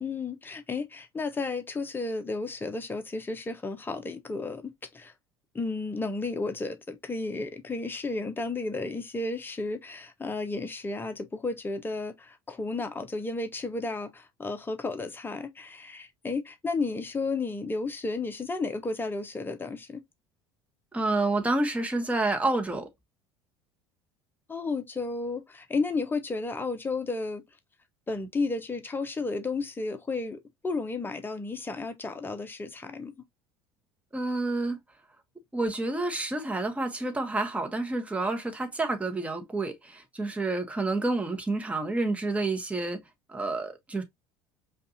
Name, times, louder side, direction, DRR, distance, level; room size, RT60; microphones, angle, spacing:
voice 1, 0.0-5.1 5.5-20.0 24.5-27.4 28.1-33.2, left 3 dB, 15° left, 0.9 m, -33 dB
voice 2, 20.9-22.9 34.1-34.8 35.5-43.0 43.3-44.0, right 2 dB, 10° right, 1.2 m, -29 dB
5.1 x 2.6 x 2.8 m
hypercardioid pair, 65°, 13 cm